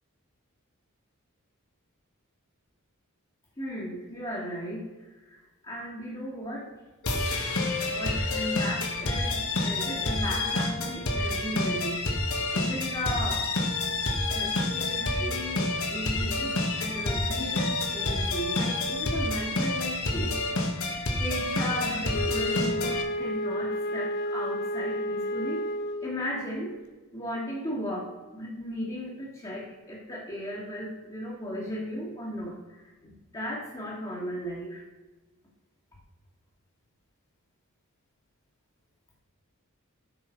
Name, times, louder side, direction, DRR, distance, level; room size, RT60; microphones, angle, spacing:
voice 1, 3.6-6.7 7.4-12.0 12.5-13.5 14.3-25.7 26.0-26.8 27.1-34.8, equal, 20° left, -5 dB, 1.4 m, -36 dB
sound 1, 7.0-23.0, left 2 dB, 70° left, 1.2 m, -28 dB
Wind instrument woodwind instrument, 22.1-26.3, left 1 dB, 50° left, 0.5 m, -31 dB
7.9 x 5.7 x 4.4 m, 1.2 s
head